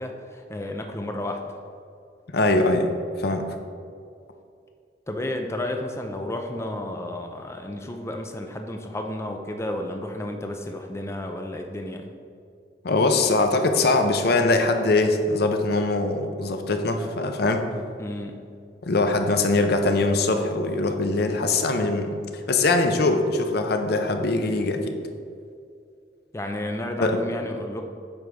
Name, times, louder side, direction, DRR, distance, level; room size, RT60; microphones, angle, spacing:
voice 1, 0.0-1.6 5.1-12.1 18.0-18.4 26.3-27.8, left 1 dB, 15° left, 3 dB, 0.5 m, -32 dB
voice 2, 2.3-2.9 3.2-3.4 12.8-17.6 18.8-22.1 22.5-24.9 27.0-27.2, left 2 dB, 60° left, 6 dB, 0.7 m, -22 dB
8.7 x 3.5 x 6.4 m, 2.3 s
head